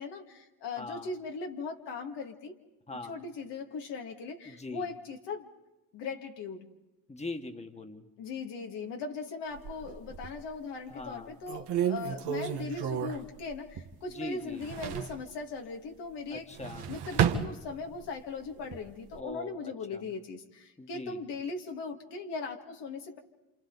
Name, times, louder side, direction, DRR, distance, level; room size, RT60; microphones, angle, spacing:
voice 1, 0.0-2.6 3.1-5.5 5.9-6.7 8.2-16.5 16.9-23.2, left 4 dB, 80° left, 2 dB, 2.1 m, -39 dB
voice 2, 0.7-1.1 2.9-3.2 4.4-4.9 7.1-8.1 10.9-11.4 14.1-14.7 16.3-16.9 19.2-20.1 20.8-21.2, left 2 dB, 15° left, 6 dB, 1.6 m, -42 dB
sound 1, 9.5-10.5 11.0-11.1 11.5-14.1 14.4-15.2 16.4-18.1 18.6-19.2, right 9 dB, 70° right, 1.4 m, -32 dB
29.0 x 27.0 x 4.0 m, 1.0 s
supercardioid pair, 70°, 41 cm